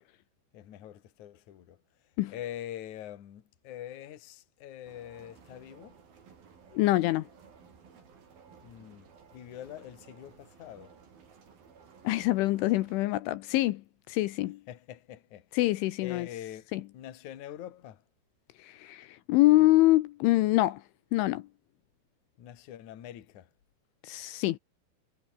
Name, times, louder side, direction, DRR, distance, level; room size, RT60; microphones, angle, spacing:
voice 1, 0.5-1.8 2.3-6.0 8.6-11.0 14.7-15.5 16.0-18.0 22.4-23.5, left 11 dB, 50° left, 2.6 m, -44 dB
sound 1, 4.8-13.0, right 6 dB, 50° right, 6.0 m, -56 dB
voice 2, 6.7-7.3 12.0-14.6 15.5-16.3 16.7-16.8 18.6-20.8 21.1-21.5 24.0-24.6, left 18 dB, 80° left, 3.2 m, -25 dB
omnidirectional pair, 5.8 m